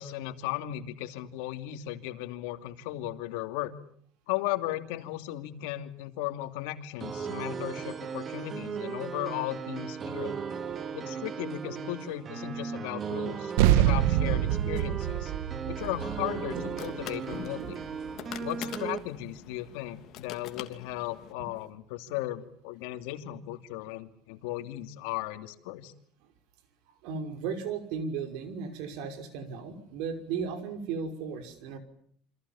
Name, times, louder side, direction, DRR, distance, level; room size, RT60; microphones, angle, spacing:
voice 1, 0.0-3.7 4.3-10.3 10.9-15.3 15.7-17.6 18.4-25.9, left 14 dB, 85° left, 8 dB, 2.8 m, -36 dB
sound 1, 7.0-19.0, right 6 dB, 25° right, 2.0 m, -37 dB
sound 2, 13.6-18.4, right 12 dB, 85° right, 1.3 m, -26 dB
sound 3, 15.8-21.3, left 12 dB, 50° left, 2.8 m, -45 dB
voice 2, 16.5-17.7 21.4-21.5 27.0-31.8, right 5 dB, 70° right, 8 dB, 5.6 m, -36 dB
28.5 x 26.5 x 7.3 m, 0.63 s
cardioid pair, 150°, 0 cm